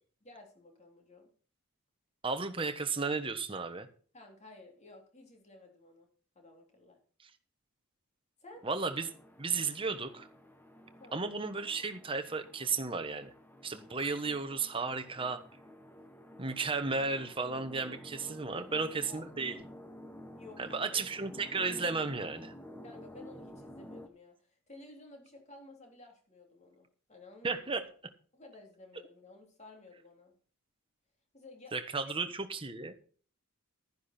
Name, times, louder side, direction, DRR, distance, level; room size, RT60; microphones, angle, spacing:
voice 1, 0.2-1.3 4.1-6.1 6.3-7.0 8.4-8.7 11.0-11.3 18.5-19.2 20.3-20.9 22.8-27.6 28.3-30.3 31.3-31.7 32.0-32.1, left 2 dB, 30° left, 2 dB, 3.4 m, -54 dB
voice 2, 2.2-3.9 8.6-9.1 9.4-10.3 11.1-13.3 13.6-15.4 16.4-19.6 20.6-22.5 27.4-27.9 31.7-32.9, right 4 dB, 25° right, 8 dB, 1.2 m, -34 dB
sound 1, 8.5-24.1, equal, 10° left, 1.2 m, -51 dB
12.0 x 10.5 x 4.4 m, 0.43 s
head